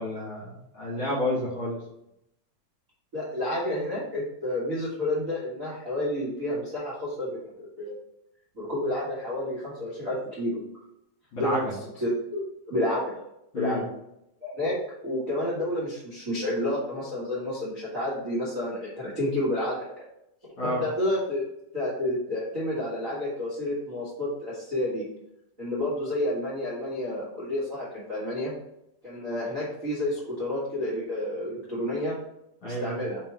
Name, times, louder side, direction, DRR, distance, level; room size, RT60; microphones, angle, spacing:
voice 1, 0.0-1.8 11.3-11.7 13.5-13.8 20.6-20.8 32.6-33.0, left 1 dB, 50° left, -6 dB, 2.0 m, -30 dB
voice 2, 3.1-8.0 8.5-10.6 11.4-11.6 12.0-13.1 13.5-13.9 14.4-14.8 15.0-19.8 20.4-21.5 21.7-25.0 25.6-28.5 29.0-32.1 32.6-33.2, left 1 dB, 40° right, -7 dB, 1.2 m, -30 dB
5.8 x 3.7 x 4.6 m, 0.81 s
omnidirectional pair, 4.2 m